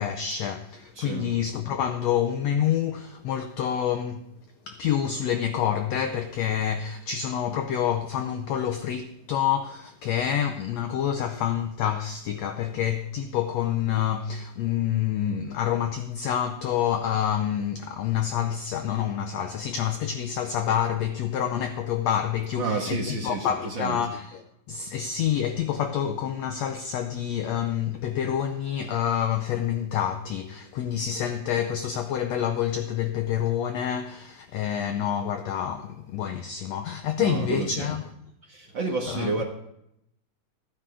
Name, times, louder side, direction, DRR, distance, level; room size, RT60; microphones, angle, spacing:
voice 1, 0.0-4.2 4.7-38.0 39.1-39.3, left 9 dB, 80° left, 1.5 m, -27 dB
voice 2, 0.9-1.3 22.6-24.0 37.2-38.0 38.4-39.4, right 4 dB, 50° right, 1.6 m, -30 dB
14.5 x 9.4 x 4.9 m
omnidirectional pair, 3.8 m